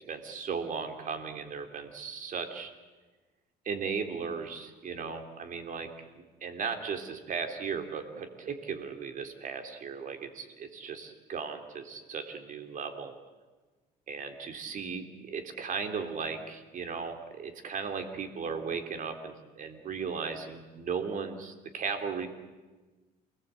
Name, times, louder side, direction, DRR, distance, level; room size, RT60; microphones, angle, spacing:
voice 1, 0.1-2.7 3.6-5.9 6.2-13.1 14.1-22.3, right 5 dB, 50° right, 6 dB, 3.3 m, -36 dB
28.5 x 20.0 x 8.3 m, 1.3 s
cardioid pair, 110°, 17 cm